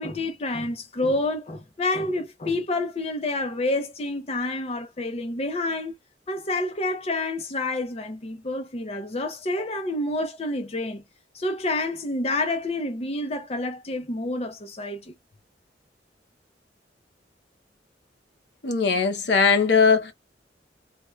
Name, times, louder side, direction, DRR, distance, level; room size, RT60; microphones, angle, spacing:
voice 1, 0.0-5.9 6.3-11.0 11.3-15.1, left 2 dB, 35° left, 0.5 m, -28 dB
voice 2, 18.6-20.1, left 5 dB, 70° left, 0.8 m, -20 dB
3.3 x 2.2 x 3.1 m
head